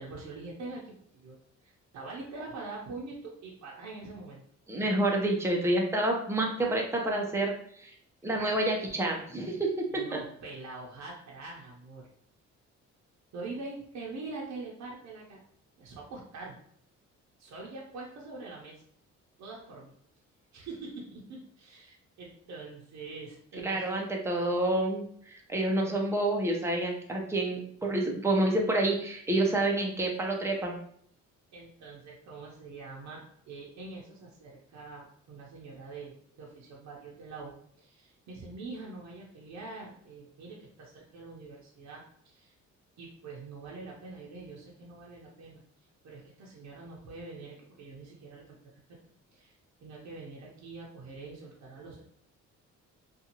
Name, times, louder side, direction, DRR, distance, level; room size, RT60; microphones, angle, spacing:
voice 1, 0.0-1.4 1.6-4.4 8.2-8.6 9.9-12.1 13.3-15.4 15.8-16.6 17.4-18.8 19.4-19.9 20.5-24.0 31.5-42.5 43.0-45.6 46.0-48.6 48.9-49.0 49.3-49.5 49.8-52.0, right 3 dB, 65° right, -3 dB, 0.7 m, -44 dB
voice 2, 4.7-7.9 8.2-10.0 23.6-30.8, right 1 dB, 10° right, 0 dB, 0.6 m, -28 dB
2.6 x 2.4 x 2.8 m, 0.64 s
cardioid pair, 90°, 30 cm